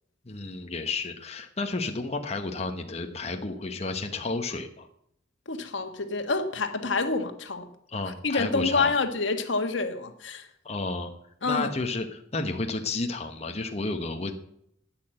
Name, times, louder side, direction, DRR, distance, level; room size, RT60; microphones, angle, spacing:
voice 1, 0.2-4.9 7.9-8.9 10.6-11.1 11.4-14.3, left 3 dB, 35° left, 1.1 m, -31 dB
voice 2, 5.5-7.7 8.0-10.5 11.4-11.7, left 3 dB, 80° left, 1.4 m, -28 dB
13.0 x 8.9 x 7.6 m
head